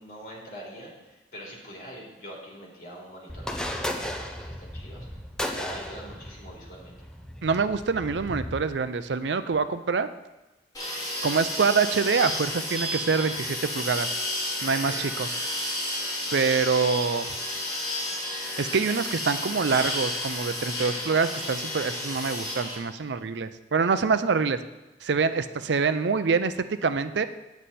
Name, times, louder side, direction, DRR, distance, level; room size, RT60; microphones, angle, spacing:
voice 1, 0.0-5.1 5.5-7.0 14.9-15.0 20.8-21.1, equal, 50° left, -3 dB, 3.2 m, -44 dB
sound 1, 3.3-8.6, equal, 5° left, 0.7 m, -35 dB
voice 2, 7.4-10.1 11.2-14.1 14.6-15.3 16.3-17.3 18.6-24.6 25.0-26.5 26.8-27.3, right 5 dB, 80° right, 12 dB, 0.5 m, -25 dB
sound 2, 10.7-22.7, left 1 dB, 20° left, 3.4 m, -32 dB
9.5 x 9.0 x 4.2 m, 1.0 s
head